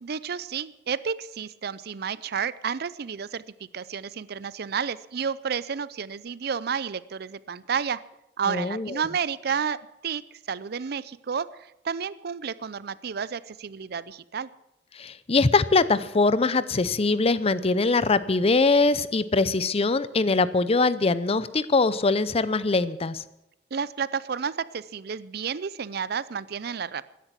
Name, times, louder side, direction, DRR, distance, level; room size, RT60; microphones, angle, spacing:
voice 1, 0.0-8.0 8.4-14.5 23.7-27.0, right 6 dB, 60° right, 18 dB, 0.5 m, -31 dB
voice 2, 8.5-8.9 14.9-23.2, left 3 dB, 35° left, 16 dB, 0.6 m, -22 dB
16.0 x 10.5 x 7.5 m, 0.87 s
head